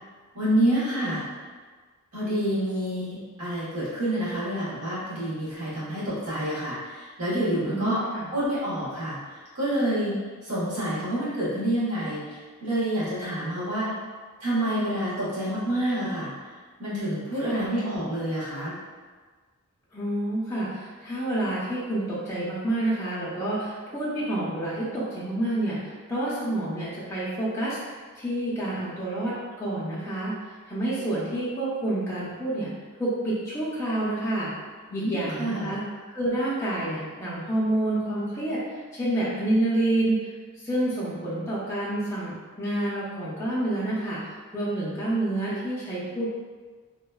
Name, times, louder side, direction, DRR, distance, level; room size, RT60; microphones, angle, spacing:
voice 1, 0.3-1.2 2.1-8.0 8.3-9.2 9.5-13.9 14.4-16.3 16.8-18.7 34.9-35.7, right 1 dB, 85° right, -10 dB, 1.3 m, -28 dB
voice 2, 7.6-8.3 17.5-17.6 19.9-25.8 26.1-27.8 28.2-29.3 29.6-30.3 30.7-32.7 33.0-34.5 34.9-35.8 36.1-38.6 38.9-40.1 40.6-46.3, right 1 dB, 10° left, -10 dB, 0.5 m, -28 dB
3.0 x 2.1 x 2.2 m, 1.5 s
head